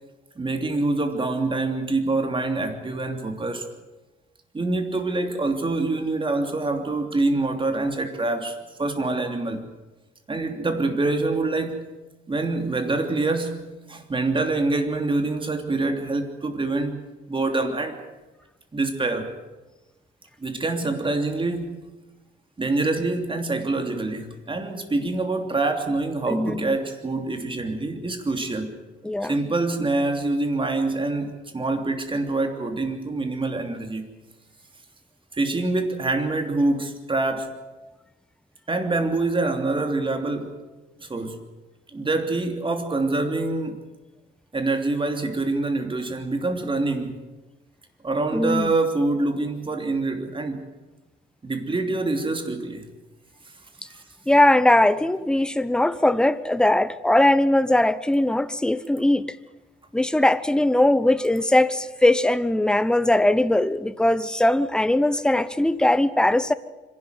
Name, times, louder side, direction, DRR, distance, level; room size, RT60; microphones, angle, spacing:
voice 1, 0.4-3.7 4.5-9.7 10.3-11.9 12.3-17.0 17.3-18.0 18.7-19.3 20.4-21.8 22.6-28.7 29.2-34.1 35.3-37.6 38.7-40.6 41.0-41.4 41.9-43.8 44.5-47.2 48.0-50.6 51.4-52.9 53.9-54.0, right 2 dB, 25° right, 3.0 m, -25 dB
voice 2, 26.3-26.8 29.0-29.4 48.3-48.7 54.3-59.2 59.9-66.5, left 1 dB, 5° left, 0.8 m, -20 dB
25.5 x 12.0 x 9.5 m
cardioid pair, 90°, 20 cm